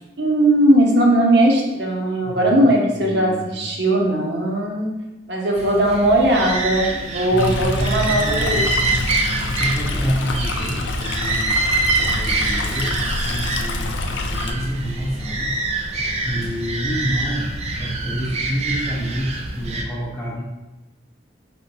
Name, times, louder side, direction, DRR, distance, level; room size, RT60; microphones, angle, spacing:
voice 1, 0.2-4.9 5.3-8.6, right 1 dB, 65° right, 0 dB, 0.9 m, -18 dB
voice 2, 2.2-2.7 2.9-3.6 7.3-8.7 9.5-11.6 12.0-15.5 15.9-20.4, equal, 10° left, -7 dB, 0.6 m, -28 dB
sound 1, 5.6-19.8, right 2 dB, 35° right, 0.5 m, -25 dB
Stream, 7.4-14.5, left 2 dB, 75° left, 0.4 m, -26 dB
4.4 x 4.2 x 2.7 m, 1.0 s
head